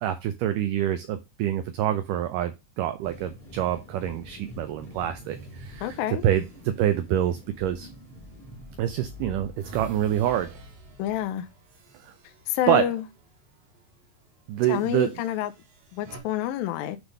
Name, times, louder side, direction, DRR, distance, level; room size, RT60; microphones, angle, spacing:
voice 1, 0.0-7.9 8.8-10.5 12.7-12.9 14.5-15.2, right 11 dB, 85° right, 1.9 m, -26 dB
sound 1, 3.0-11.5, left 2 dB, 5° left, 1.7 m, -46 dB
sound 2, 5.1-8.5 8.9-13.2 13.6-13.8 14.6-16.2, right 3 dB, 65° right, 3.3 m, -50 dB
voice 2, 5.8-6.2 11.0-11.5 12.5-13.0 14.7-15.5 15.9-17.0, left 12 dB, 80° left, 2.1 m, -28 dB
7.9 x 3.4 x 5.3 m
omnidirectional pair, 4.4 m